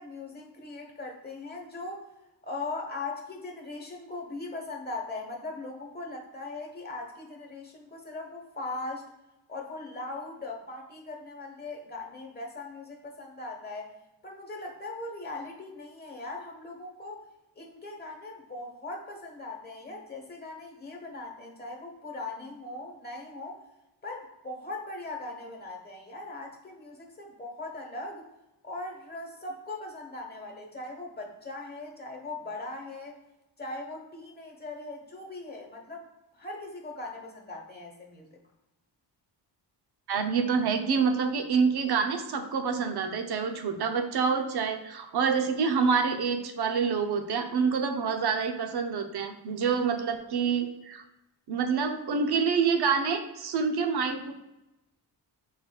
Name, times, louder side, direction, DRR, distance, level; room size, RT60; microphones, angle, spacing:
voice 1, 0.0-2.0 2.4-9.0 9.5-13.9 14.2-17.2 17.5-23.6 24.0-28.2 28.6-33.2 33.6-38.3, left 2 dB, 20° left, 1 dB, 1.1 m, -40 dB
voice 2, 40.1-51.0 51.5-54.3, right 5 dB, 65° right, 6 dB, 0.7 m, -27 dB
5.2 x 4.0 x 2.3 m, 0.96 s
cardioid pair, 80°, 43 cm